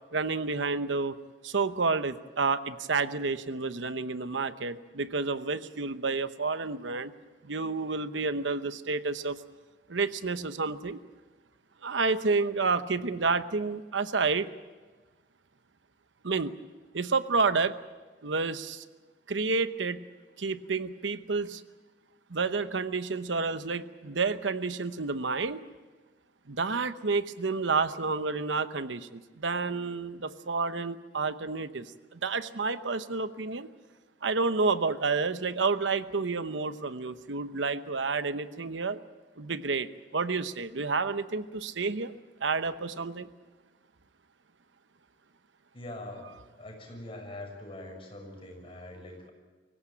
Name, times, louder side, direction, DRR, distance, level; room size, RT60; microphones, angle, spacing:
voice 1, 0.1-1.2 1.4-7.1 7.4-9.4 9.9-11.0 11.8-14.5 16.2-16.5 16.9-17.7 18.2-18.8 19.3-20.0 20.4-21.6 22.3-25.6 26.5-33.7 34.2-39.0 39.4-42.1 42.4-43.3, right 4 dB, 85° right, 11 dB, 0.9 m, -30 dB
voice 2, 45.7-46.3 46.6-49.3, left 1 dB, 30° left, 1 dB, 6.4 m, -43 dB
24.5 x 16.5 x 9.0 m, 1.3 s
head